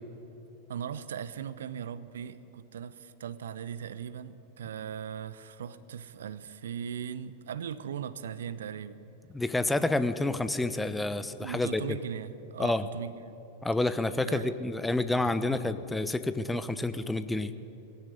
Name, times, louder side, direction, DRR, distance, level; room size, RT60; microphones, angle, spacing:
voice 1, 0.7-9.0 11.4-13.4 14.3-14.6, right 8 dB, 65° right, 15 dB, 0.8 m, -39 dB
voice 2, 9.3-12.0 12.6-12.8 13.6-17.5, left 2 dB, 5° left, 12 dB, 1.0 m, -29 dB
21.5 x 16.0 x 9.8 m, 2.8 s
figure-of-eight pair, 90°, 0 cm